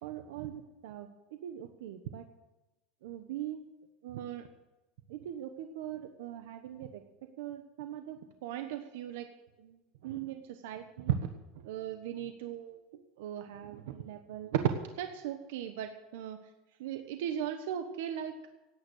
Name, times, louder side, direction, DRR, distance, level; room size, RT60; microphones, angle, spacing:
voice 1, 0.0-2.3 3.0-3.6 4.0-4.5 5.1-7.0 7.4-9.3 9.6-11.3 11.5-12.9 13.2-14.6 15.0-16.4 16.8-18.3, right 10 dB, 85° right, 7 dB, 1.2 m, -38 dB
17.5 x 9.6 x 6.5 m, 1.0 s
supercardioid pair, 155°, 0 cm